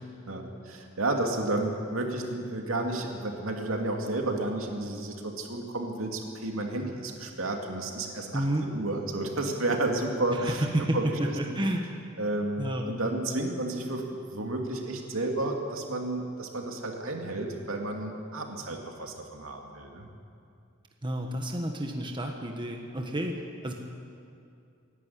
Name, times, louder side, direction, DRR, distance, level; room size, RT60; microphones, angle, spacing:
voice 1, 0.3-8.5 8.7-10.7 10.9-11.3 12.2-20.1, right 2 dB, 75° right, 2 dB, 2.5 m, -31 dB
voice 2, 8.3-8.7 10.3-11.8 12.6-12.9 21.0-23.7, right 1 dB, 20° right, 2 dB, 1.4 m, -30 dB
24.0 x 11.0 x 9.5 m, 2.4 s
head